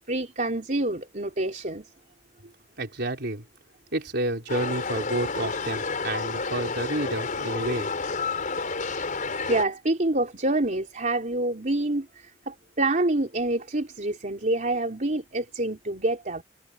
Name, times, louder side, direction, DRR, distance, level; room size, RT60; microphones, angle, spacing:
voice 1, 0.1-1.9 9.5-16.4, right 2 dB, 45° right, 3.7 m, -27 dB
voice 2, 2.8-3.4 3.9-7.9, right 1 dB, 60° right, 4.2 m, -30 dB
sound 1, 4.5-9.6, left 4 dB, 45° left, 4.8 m, -30 dB
head